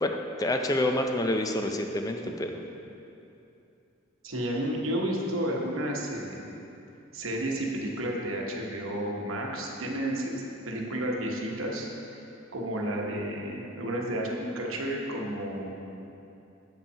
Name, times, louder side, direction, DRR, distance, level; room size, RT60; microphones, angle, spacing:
voice 1, 0.0-2.5, left 1 dB, 20° left, 4 dB, 0.4 m, -28 dB
voice 2, 4.2-6.5 7.1-11.9 12.5-15.7, right 1 dB, 80° right, -1 dB, 1.0 m, -31 dB
7.1 x 5.6 x 5.4 m, 2.8 s
head